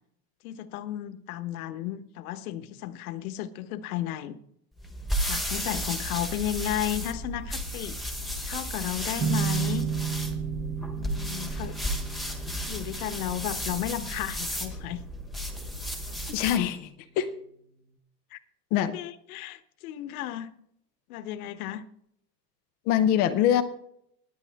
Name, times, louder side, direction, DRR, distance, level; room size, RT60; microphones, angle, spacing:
voice 1, 0.4-4.4 5.2-8.0 8.4-9.9 11.0-11.8 12.7-15.0 18.3-18.4 18.7-20.5 21.1-21.9, left 12 dB, 60° left, 12 dB, 1.2 m, -34 dB
sound 1, 4.8-16.7, equal, ahead, 1.1 m, -33 dB
sound 2, 9.2-16.4, right 7 dB, 20° right, 0.7 m, -34 dB
voice 2, 16.3-16.9 17.2-17.3 18.7-18.9 22.9-23.6, left 10 dB, 20° left, 12 dB, 0.4 m, -23 dB
20.0 x 8.9 x 3.5 m, 0.70 s
supercardioid pair, 160°, 50 cm